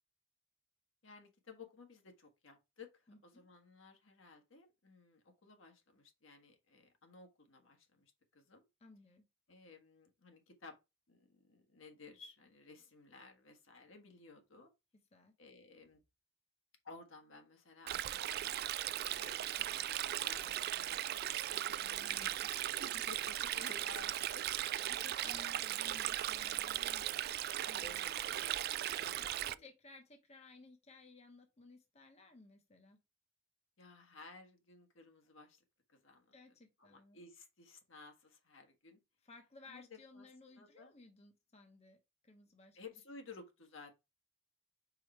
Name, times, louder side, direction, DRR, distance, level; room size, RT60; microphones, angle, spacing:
voice 1, 1.0-8.7 9.5-10.8 11.1-14.7 15.4-16.0 16.8-18.6 19.1-25.2 25.5-25.6 27.8-28.6 28.9-29.6 33.8-35.6 35.9-36.3 36.8-39.0 39.7-40.3 40.5-40.9 42.7-43.9, left 3 dB, 75° left, 1.5 m, -56 dB
voice 2, 3.1-3.4 8.8-9.3 15.1-15.3 22.6-22.9 24.8-28.0 29.1-33.0 36.3-37.2 39.2-42.8, left 3 dB, 35° left, 0.8 m, -59 dB
Stream, 17.9-29.5, right 12 dB, 50° right, 0.3 m, -38 dB
4.8 x 4.5 x 4.3 m
head